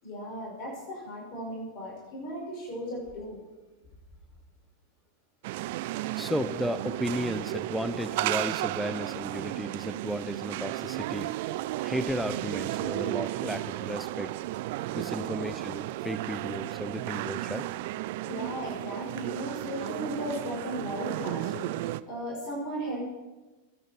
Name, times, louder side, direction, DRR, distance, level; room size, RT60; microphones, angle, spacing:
voice 1, 0.0-3.4 15.1-15.2 18.2-23.0, equal, 40° left, -3 dB, 5.8 m, -36 dB
sound 1, 5.4-22.0, right 16 dB, 50° right, 0.4 m, -34 dB
voice 2, 6.2-11.3 11.8-14.4 14.9-17.7, equal, ahead, 12 dB, 0.6 m, -34 dB
20.5 x 9.2 x 4.6 m, 1.2 s
figure-of-eight pair, 90°, 0 cm